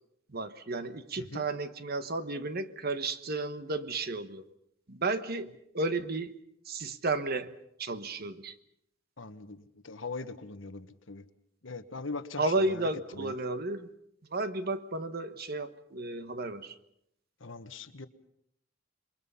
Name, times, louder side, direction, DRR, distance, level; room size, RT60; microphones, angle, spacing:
voice 1, 0.3-4.4 4.9-5.5 5.7-6.3 6.6-7.5 7.8-8.5 12.4-13.9 14.3-16.7, right 2 dB, 55° right, 11 dB, 1.3 m, -33 dB
voice 2, 9.2-11.3 11.6-12.9 13.1-13.3 17.4-18.1, left 3 dB, 85° left, 9 dB, 1.4 m, -41 dB
27.5 x 23.0 x 5.6 m, 0.77 s
head